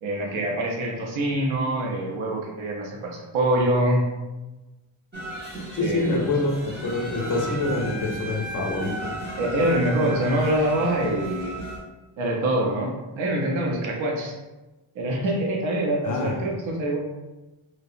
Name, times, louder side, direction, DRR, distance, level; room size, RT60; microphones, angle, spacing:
voice 1, 0.0-4.1 5.8-6.3 9.4-11.6 12.2-14.3 14.9-17.0, right 1 dB, 70° right, -1 dB, 0.6 m, -25 dB
sound 1, 5.1-11.8, right 1 dB, 20° right, 0.5 m, -35 dB
voice 2, 5.7-9.1 16.0-16.4, left 2 dB, 40° left, 0 dB, 0.5 m, -26 dB
2.7 x 2.0 x 2.4 m, 1.1 s
wide cardioid pair, 140°, 49 cm